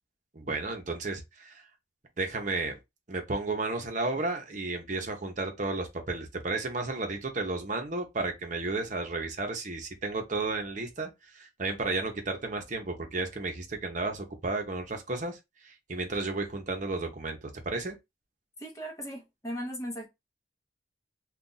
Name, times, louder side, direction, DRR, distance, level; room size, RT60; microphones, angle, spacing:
voice 1, 0.3-1.6 2.2-2.7 3.1-15.4 15.6-18.0, right 3 dB, 45° right, 0.8 m, -33 dB
voice 2, 18.6-20.1, equal, 15° left, 0.9 m, -37 dB
2.5 x 2.3 x 3.9 m
head